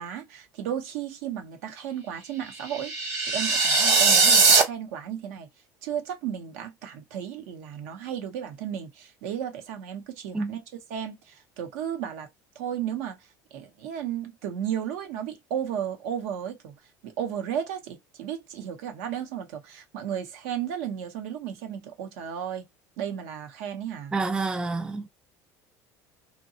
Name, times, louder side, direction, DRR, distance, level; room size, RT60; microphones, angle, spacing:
voice 1, 0.0-5.5 5.8-10.6 10.9-12.3 12.5-22.7 23.0-24.2, right 9 dB, 85° right, 0.8 m, -34 dB
sound 1, 2.6-4.6, right 4 dB, 35° right, 1.0 m, -20 dB
voice 2, 24.1-25.1, right 3 dB, 10° right, 0.3 m, -28 dB
2.8 x 2.2 x 2.7 m
supercardioid pair, 110°, 9 cm